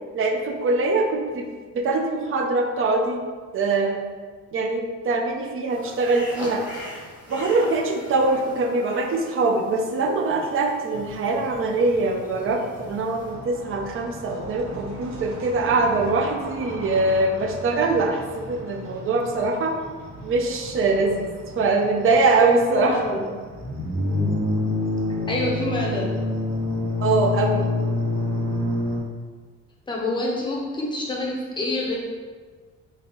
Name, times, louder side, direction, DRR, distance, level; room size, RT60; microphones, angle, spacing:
voice 1, 0.1-1.5 1.7-3.2 3.5-4.0 4.5-6.7 7.3-19.8 20.2-21.3 21.6-23.0 27.0-27.7, right 3 dB, 45° right, 3 dB, 0.5 m, -23 dB
sound 1, 5.7-13.3, equal, 5° right, 1.0 m, -42 dB
sound 2, 10.9-29.0, left 2 dB, 60° right, 1.5 m, -29 dB
voice 2, 22.7-23.3 25.3-26.2 29.9-32.0, left 2 dB, 15° left, -3 dB, 0.6 m, -27 dB
4.1 x 2.4 x 3.8 m, 1.5 s
cardioid pair, 160°, 31 cm